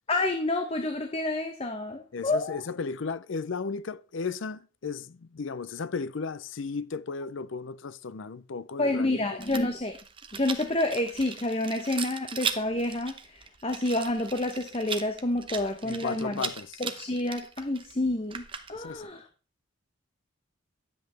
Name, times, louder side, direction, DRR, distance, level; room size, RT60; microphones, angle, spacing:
voice 1, 0.1-2.6 8.8-10.0 10.3-16.5 16.8-19.2, left 2 dB, 30° left, 0.9 m, -29 dB
voice 2, 2.1-9.2 15.8-16.8 18.7-19.1, left 5 dB, 70° left, 0.5 m, -35 dB
Rattle, 9.4-19.0, right 6 dB, 25° right, 0.8 m, -38 dB
12.0 x 7.9 x 3.3 m
head